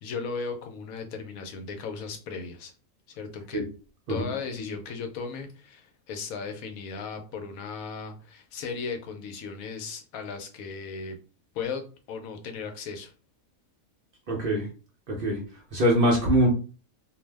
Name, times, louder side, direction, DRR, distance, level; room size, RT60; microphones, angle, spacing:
voice 1, 0.0-2.7 3.1-3.6 4.1-11.2 11.5-11.8 12.1-13.1, left 5 dB, 80° left, 1.0 m, -36 dB
voice 2, 14.3-14.7 15.1-15.4 15.7-16.5, equal, 55° right, 0.7 m, -23 dB
2.6 x 2.0 x 3.2 m
omnidirectional pair, 1.4 m